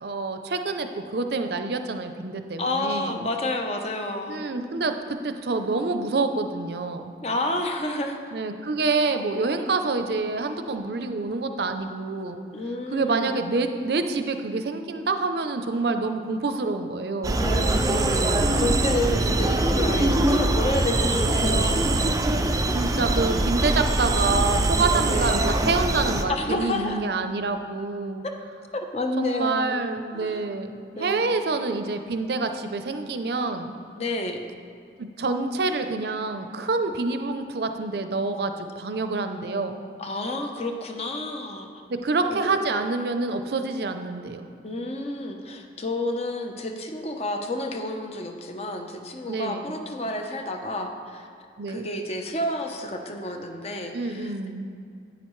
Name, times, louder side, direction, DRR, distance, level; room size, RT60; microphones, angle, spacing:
voice 1, 0.0-3.2 4.3-7.1 8.3-12.4 12.9-17.4 19.0-19.5 22.7-28.2 29.2-33.7 35.0-39.8 41.9-44.5 49.3-49.7 51.6-51.9 53.9-54.7, right 3 dB, 65° right, 7 dB, 0.5 m, -27 dB
voice 2, 2.6-4.4 7.2-8.2 12.5-13.4 17.4-21.9 22.6-22.8 25.0-25.6 26.3-27.0 28.9-30.4 30.9-31.3 34.0-34.4 40.0-41.7 42.3-42.6 44.6-51.3 51.7-54.3, left 1 dB, 35° left, 4 dB, 0.7 m, -30 dB
sound 1, 17.2-26.2, right 2 dB, 20° right, 0.4 m, -23 dB
10.0 x 9.2 x 3.1 m, 2.5 s
head